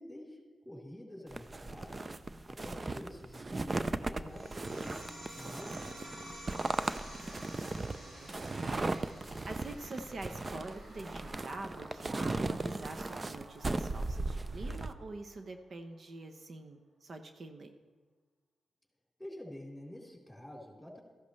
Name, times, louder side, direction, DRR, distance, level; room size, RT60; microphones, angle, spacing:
voice 1, 0.0-2.1 2.5-5.0 5.4-6.2 19.2-21.0, left 1 dB, 5° left, -2 dB, 3.8 m, -48 dB
sound 1, 1.3-14.9, right 2 dB, 35° right, 0.6 m, -37 dB
sound 2, 4.3-15.3, right 1 dB, 75° right, 4.5 m, -51 dB
voice 2, 7.0-7.3 7.6-8.9 9.2-17.7, right 2 dB, 60° right, 6 dB, 0.9 m, -46 dB
14.0 x 11.5 x 3.3 m, 1.4 s
cardioid pair, 55°, 0 cm